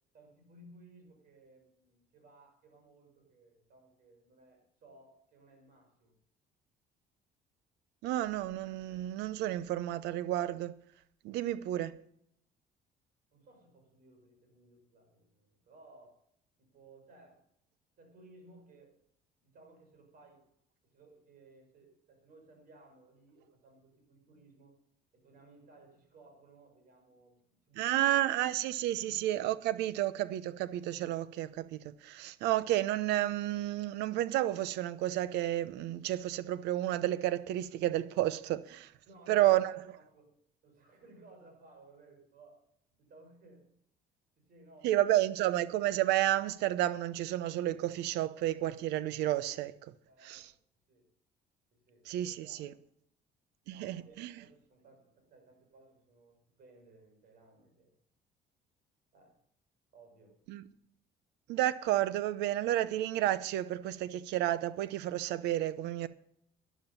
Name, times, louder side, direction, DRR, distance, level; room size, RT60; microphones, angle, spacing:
voice 1, 0.1-6.2 13.3-16.2 16.6-17.4 18.0-19.0 19.4-20.5 20.8-24.8 25.1-28.3 28.9-29.2 39.1-39.7 40.0-42.6 43.0-43.7 44.4-45.1 50.1-50.6 50.9-51.1 51.7-52.6 53.7-57.9 59.1-59.4 59.9-60.4, right 2 dB, 60° right, 6.2 m, -59 dB
voice 2, 8.0-10.8 11.2-12.0 27.8-38.9 39.3-39.8 44.8-49.9 50.2-50.5 52.0-52.7 53.7-54.3 60.5-60.6 61.5-66.1, right 14 dB, 90° right, 0.8 m, -31 dB
12.0 x 11.5 x 5.6 m
cardioid pair, 110°, 17 cm